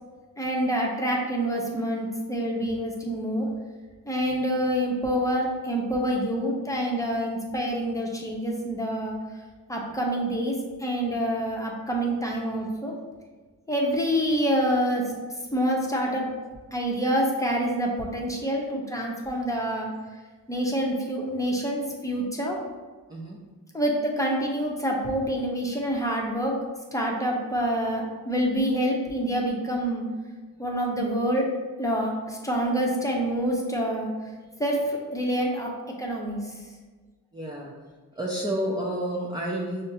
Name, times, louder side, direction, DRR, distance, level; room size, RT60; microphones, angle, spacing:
voice 1, 0.4-3.5 4.1-9.2 9.7-13.0 13.7-15.0 15.5-16.3 16.7-19.9 20.5-22.6 23.7-26.6 26.9-30.0 30.6-31.5 31.8-34.1 34.6-35.7 36.0-36.6, equal, 10° left, -2 dB, 0.8 m, -27 dB
voice 2, 37.3-37.7 38.2-39.8, right 1 dB, 10° right, -4 dB, 0.5 m, -30 dB
5.3 x 2.1 x 2.7 m, 1.4 s
supercardioid pair, 55°, 40 cm